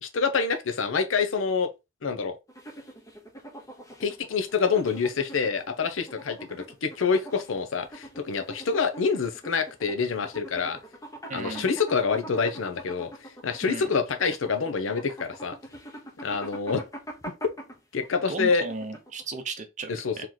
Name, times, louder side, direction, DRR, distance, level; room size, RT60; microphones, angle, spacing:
voice 1, 0.0-1.7 2.0-2.4 4.0-10.8 11.3-13.1 13.4-15.6 16.2-16.8 17.9-18.7 19.9-20.3, left 5 dB, 75° left, 0.6 m, -27 dB
sound 1, 2.5-19.3, right 1 dB, 15° left, 0.9 m, -44 dB
voice 2, 11.3-11.7 13.6-13.9 18.3-20.2, right 3 dB, 40° right, 0.7 m, -35 dB
3.1 x 2.9 x 3.8 m
head